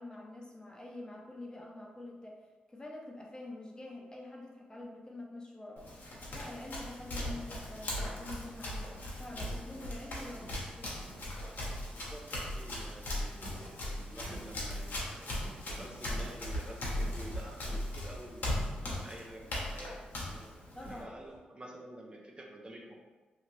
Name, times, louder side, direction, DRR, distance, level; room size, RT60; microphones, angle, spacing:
voice 1, 0.0-2.4 2.7-5.9 6.3-11.0 20.7-21.2, left 2 dB, 25° left, -1 dB, 0.7 m, -46 dB
Run, 5.8-21.0, left 1 dB, 70° left, 0.9 m, -39 dB
sound 1, 9.3-21.4, right 1 dB, 60° right, 1.3 m, -55 dB
voice 2, 11.9-15.3 15.7-20.5 20.8-22.9, right 1 dB, 30° right, 0 dB, 0.5 m, -49 dB
2.8 x 2.4 x 3.1 m, 1.3 s
supercardioid pair, 50°, 3 cm